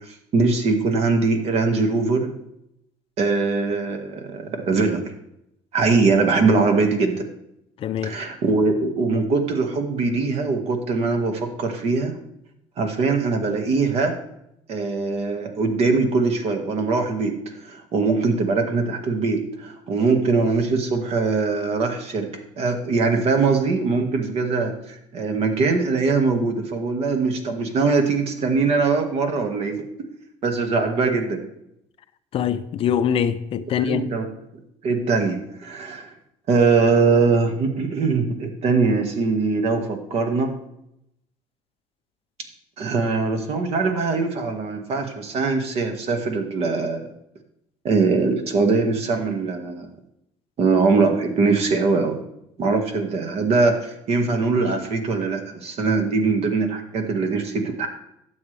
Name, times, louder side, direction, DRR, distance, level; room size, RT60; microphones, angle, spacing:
voice 1, 0.0-2.3 3.2-5.1 5.7-7.2 8.0-12.1 12.8-14.2 14.7-22.3 22.6-29.8 30.4-31.4 33.9-34.3 34.8-36.1 36.5-40.5 42.8-47.1 47.8-49.9 50.6-52.2 52.6-57.9, right 4 dB, 50° right, 1.9 m, -22 dB
voice 2, 7.8-8.1 32.3-34.1, left 8 dB, 45° left, 0.6 m, -23 dB
12.0 x 7.8 x 3.4 m
cardioid pair, 120°, 13 cm